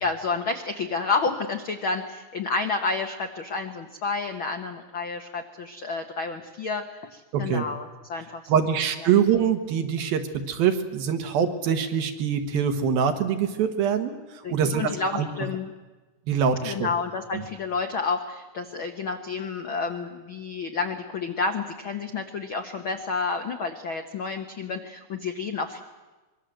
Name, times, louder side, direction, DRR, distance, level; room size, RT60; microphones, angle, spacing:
voice 1, 0.0-9.1 14.4-15.7 16.6-25.8, left 4 dB, 85° left, 5 dB, 1.1 m, -30 dB
voice 2, 7.3-7.7 8.5-15.3 16.3-16.9 17.3-17.4, right 7 dB, 75° right, 6 dB, 3.4 m, -24 dB
24.5 x 23.0 x 7.8 m, 1.2 s
omnidirectional pair, 4.4 m